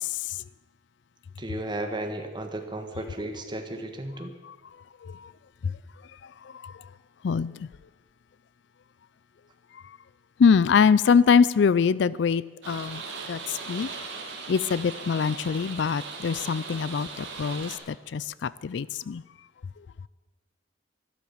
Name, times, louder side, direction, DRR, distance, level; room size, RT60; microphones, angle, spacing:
voice 1, 1.4-4.3, right 1 dB, 25° right, 1.5 m, -34 dB
voice 2, 10.4-13.0 13.3-13.4 13.7-13.9 14.5-17.7 18.1-18.2 18.6-19.2, left 6 dB, 65° left, 0.4 m, -22 dB
sound 1, 12.6-17.8, right 4 dB, 70° right, 2.6 m, -38 dB
12.5 x 12.5 x 7.1 m
head